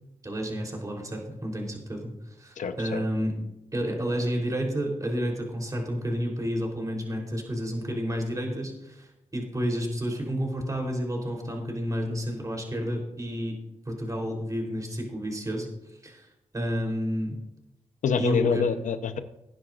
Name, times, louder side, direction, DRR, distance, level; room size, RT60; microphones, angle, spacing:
voice 1, 0.2-2.1 2.4-3.3 3.7-13.6 13.9-15.7 16.0-16.3 16.5-17.4 18.2-18.6, equal, 25° right, 0 dB, 3.7 m, -30 dB
voice 2, 2.6-3.0 18.0-19.2, left 6 dB, 80° left, 10 dB, 0.9 m, -26 dB
18.0 x 10.0 x 2.5 m, 0.91 s
cardioid pair, 60°, 13 cm